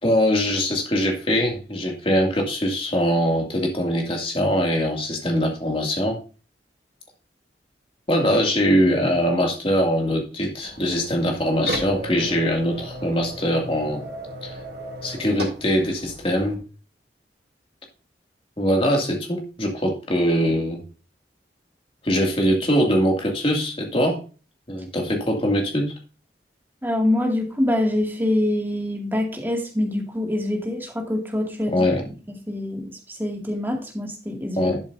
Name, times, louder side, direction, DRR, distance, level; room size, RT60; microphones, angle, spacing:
voice 1, 0.0-6.2 8.1-14.1 14.4-14.5 15.0-16.6 18.6-20.8 22.0-24.2 24.7-25.9 31.7-32.0 34.6-34.8, equal, 30° left, 1 dB, 2.4 m, -22 dB
sound 1, 10.5-16.5, right 1 dB, 60° right, 2.7 m, -35 dB
voice 2, 26.8-31.9 32.5-34.7, left 1 dB, 10° right, 1 dB, 2.1 m, -25 dB
12.0 x 7.7 x 2.7 m, 0.34 s
head